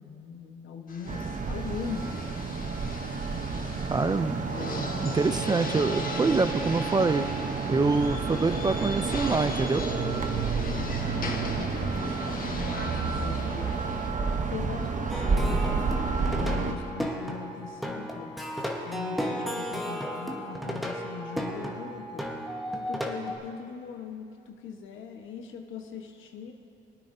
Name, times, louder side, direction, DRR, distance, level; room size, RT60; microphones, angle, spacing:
voice 1, 0.0-2.3 10.6-13.7 14.4-15.7 16.3-18.3 18.8-22.3 22.7-26.5, left 6 dB, 85° left, 4 dB, 1.2 m, -40 dB
sound 1, 0.9-14.1, left 3 dB, 45° left, 1.3 m, -40 dB
sound 2, 1.1-16.7, right 4 dB, 40° right, 0.9 m, -30 dB
voice 2, 3.9-4.4 4.8-7.2 7.7-9.8, right 3 dB, 20° right, 11 dB, 0.4 m, -26 dB
Plucked string instrument, 15.1-23.4, equal, ahead, 1.3 m, -34 dB
22.0 x 9.1 x 2.7 m, 2.6 s
cardioid pair, 90°, 20 cm